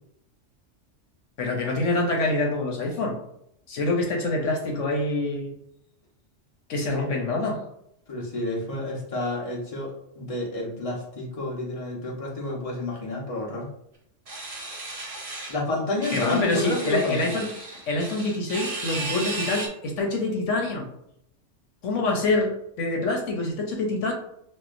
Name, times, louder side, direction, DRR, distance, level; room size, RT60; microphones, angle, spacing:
voice 1, 1.4-3.2 3.7-5.5 6.7-7.6 16.1-17.5 17.9-20.9 21.8-24.1, left 2 dB, 75° left, 1 dB, 1.1 m, -26 dB
voice 2, 8.1-13.7 15.5-17.3, left 2 dB, 30° left, -3 dB, 1.0 m, -30 dB
sound 1, 14.3-15.6 16.0-19.7, right 2 dB, 35° right, 0.7 m, -34 dB
6.4 x 2.2 x 2.5 m, 0.74 s
omnidirectional pair, 1.3 m